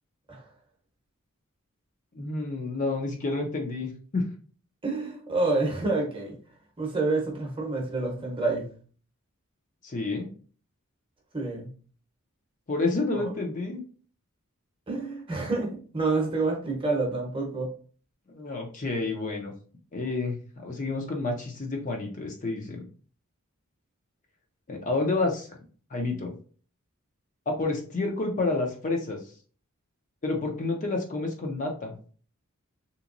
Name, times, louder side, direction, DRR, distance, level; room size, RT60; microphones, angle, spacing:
voice 1, 2.1-4.2 9.8-10.3 12.7-13.8 18.3-19.5 19.9-22.8 24.7-25.5 25.9-26.3 27.5-29.2 30.2-32.1, left 3 dB, 35° left, 1 dB, 0.5 m, -29 dB
voice 2, 4.8-6.4 6.8-8.6 11.3-11.7 13.1-13.3 14.9-17.7, right 3 dB, 25° right, 0 dB, 0.8 m, -28 dB
3.4 x 2.9 x 2.5 m, 0.42 s
head